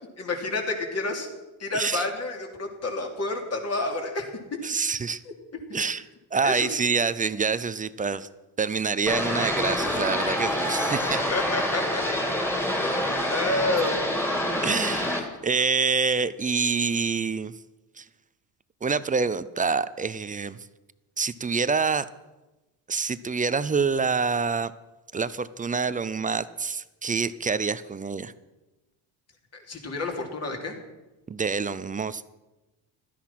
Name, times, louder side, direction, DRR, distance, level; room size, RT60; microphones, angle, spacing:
voice 1, 0.2-1.3 1.6-4.3 5.7-5.8 6.4-6.7 11.3-12.0 12.8-12.9 13.3-14.1 29.5-30.7, left 2 dB, 35° left, 2 dB, 3.4 m, -29 dB
voice 2, 1.7-2.1 4.6-5.2 5.7-6.0 6.3-8.3 8.6-11.2 14.6-17.5 18.0-18.1 18.8-20.6 21.2-22.1 22.9-24.7 25.1-28.3 31.3-32.2, right 5 dB, 20° right, 15 dB, 0.5 m, -26 dB
sound 1, 9.1-15.2, left 1 dB, 5° left, 3.0 m, -27 dB
16.0 x 13.0 x 6.0 m, 1.1 s
cardioid pair, 130°, 41 cm